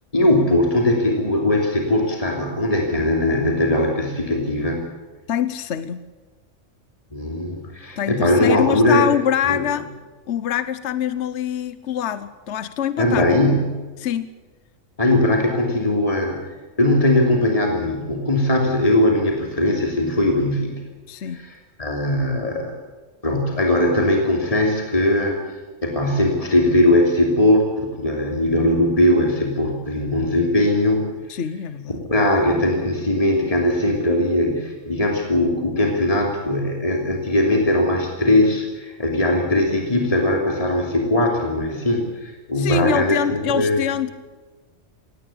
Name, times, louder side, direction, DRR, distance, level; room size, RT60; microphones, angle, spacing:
voice 1, 0.1-4.8 7.1-9.1 9.5-9.6 13.0-13.7 15.0-16.4 16.8-20.7 21.2-22.7 23.2-31.0 31.9-43.8, left 1 dB, 30° left, 1 dB, 3.1 m, -20 dB
voice 2, 5.3-6.0 8.0-9.9 10.3-13.3 14.0-14.3 21.1-21.4 31.3-32.0 42.6-44.1, left 9 dB, 65° left, 13 dB, 1.1 m, -24 dB
18.0 x 18.0 x 8.5 m, 1.3 s
omnidirectional pair, 1.3 m